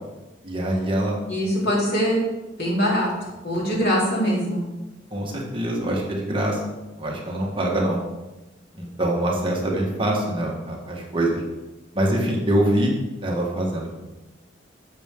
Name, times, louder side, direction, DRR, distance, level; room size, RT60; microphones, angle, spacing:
voice 1, 0.4-1.2 5.1-6.6 7.0-8.0 8.7-11.4 11.9-12.9 13.2-13.9, right 1 dB, 30° right, -2 dB, 1.7 m, -24 dB
voice 2, 1.3-2.2 2.6-3.1 3.4-4.6, equal, 60° left, -5 dB, 3.8 m, -22 dB
11.5 x 7.6 x 3.8 m, 1.1 s
head